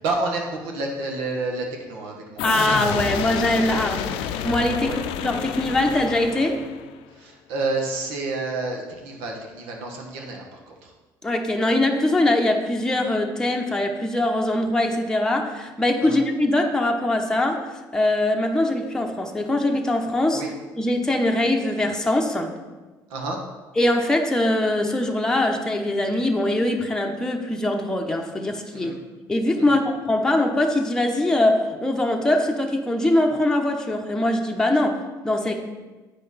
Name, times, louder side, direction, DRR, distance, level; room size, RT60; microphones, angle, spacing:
voice 1, 0.0-2.4 2.8-2.9 4.8-5.0 7.1-10.9 16.0-16.2 20.3-20.5 23.1-23.4 28.7-29.0 29.6-29.8, right 3 dB, 85° right, 1 dB, 1.4 m, -29 dB
sound 1, 2.4-7.1, left 9 dB, 85° left, 0.5 m, -29 dB
voice 2, 2.4-4.9 5.2-6.6 11.2-20.4 20.8-22.5 23.8-28.9 29.3-35.6, left 1 dB, 5° left, 1 dB, 0.9 m, -22 dB
8.6 x 5.0 x 4.2 m, 1.2 s
supercardioid pair, 80°, 9 cm